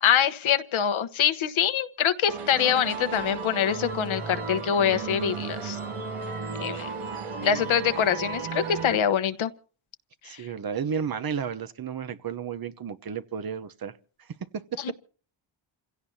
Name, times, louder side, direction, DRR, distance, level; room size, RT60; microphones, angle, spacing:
voice 1, 0.0-5.8 6.6-6.9 7.4-9.5 10.3-10.4 14.8-14.9, left 8 dB, 70° left, 1.3 m, -24 dB
sound 1, 2.3-9.0, right 5 dB, 80° right, 2.8 m, -34 dB
voice 2, 10.2-13.9 14.5-14.8, right 7 dB, 45° right, 1.0 m, -32 dB
28.5 x 16.5 x 2.8 m
cardioid pair, 105°, 49 cm